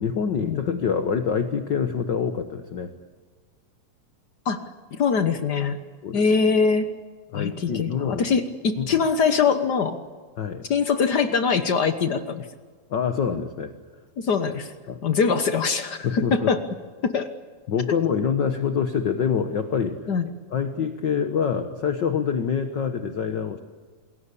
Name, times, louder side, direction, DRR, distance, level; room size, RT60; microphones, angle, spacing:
voice 1, 0.0-2.9 6.0-6.2 7.3-8.3 8.8-8.9 10.4-10.7 12.9-13.7 14.9-15.0 16.0-16.5 17.7-20.1 20.5-23.6, left 7 dB, 55° left, 9 dB, 1.2 m, -26 dB
voice 2, 4.4-5.8 6.1-6.9 7.3-10.0 10.7-12.5 14.2-14.7 15.0-16.6 17.0-17.3 20.1-20.3, left 5 dB, 85° left, 9 dB, 0.9 m, -23 dB
28.0 x 21.5 x 8.5 m, 1.5 s
omnidirectional pair, 3.7 m